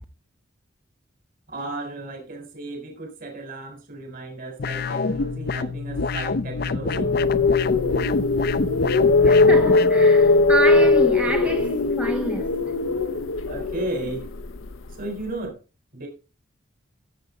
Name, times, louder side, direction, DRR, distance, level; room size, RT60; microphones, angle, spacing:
voice 1, 1.5-7.2 13.5-14.3 14.9-15.6 15.9-16.1, right 2 dB, 45° right, 4.0 m, -34 dB
sound 1, 4.6-9.9, left 4 dB, 50° left, 0.5 m, -27 dB
sound 2, 6.9-14.9, left 3 dB, 90° left, 0.7 m, -19 dB
voice 2, 9.2-12.5, right 2 dB, 5° right, 0.7 m, -28 dB
14.0 x 7.8 x 3.8 m
head